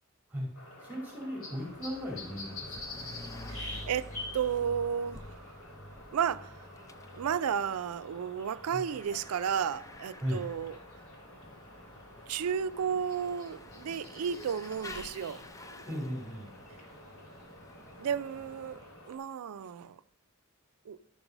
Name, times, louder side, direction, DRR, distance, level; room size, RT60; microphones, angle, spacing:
sound 1, 0.5-19.2, left 2 dB, 65° left, 3.0 m, -48 dB
voice 1, 0.8-3.1 8.7-8.8 10.2-10.4 15.8-16.5, equal, 10° right, 2.6 m, -37 dB
Bicycle / Mechanisms, 1.5-19.1, left 2 dB, 15° left, 0.4 m, -50 dB
voice 2, 3.5-5.3 6.1-6.5 7.1-10.8 12.3-15.4 18.0-18.8 19.1-20.0 20.9-21.0, right 7 dB, 85° right, 0.4 m, -33 dB
11.5 x 5.3 x 5.9 m
head